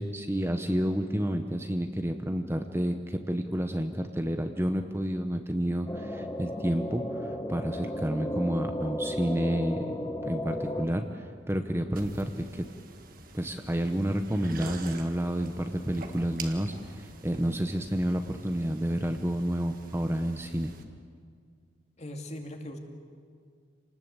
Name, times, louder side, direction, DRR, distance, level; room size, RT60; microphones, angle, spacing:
voice 1, 0.0-9.8 10.2-12.7 13.3-20.7, equal, 15° right, 6 dB, 0.9 m, -30 dB
sound 1, 5.9-10.9, left 1 dB, 15° left, 1.5 m, -34 dB
sound 2, 11.9-20.8, right 3 dB, 50° right, 1.7 m, -47 dB
voice 2, 22.0-22.8, left 1 dB, 35° left, 3 dB, 2.4 m, -39 dB
28.0 x 19.5 x 8.2 m, 2.1 s
head